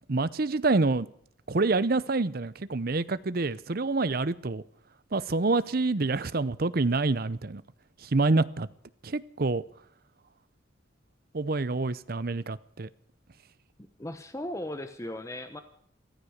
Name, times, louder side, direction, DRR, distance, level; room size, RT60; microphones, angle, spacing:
voice 1, 0.1-1.1 1.5-4.6 5.1-7.6 8.0-8.7 9.0-9.6 11.3-12.9, right 3 dB, 50° right, 0.7 m, -27 dB
voice 2, 13.8-15.6, left 1 dB, 15° left, 0.9 m, -37 dB
15.0 x 14.5 x 6.5 m
head